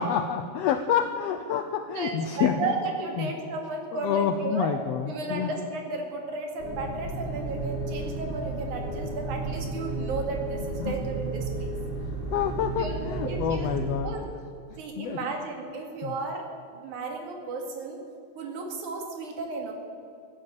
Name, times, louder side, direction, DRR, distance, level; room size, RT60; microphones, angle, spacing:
voice 1, 0.0-2.7 3.2-3.3 4.0-5.5 10.8-11.0 12.3-14.1 15.0-15.3 16.0-16.1, left 8 dB, 85° left, 9 dB, 1.4 m, -28 dB
voice 2, 1.9-4.7 5.1-11.7 12.6-13.7 14.0-14.3 14.8-16.5 16.7-18.0 18.4-19.7, right 3 dB, 70° right, 2 dB, 3.6 m, -34 dB
sound 1, 6.6-14.0, right 2 dB, 20° right, 3.9 m, -33 dB
14.5 x 11.0 x 8.7 m, 2.4 s
omnidirectional pair, 3.6 m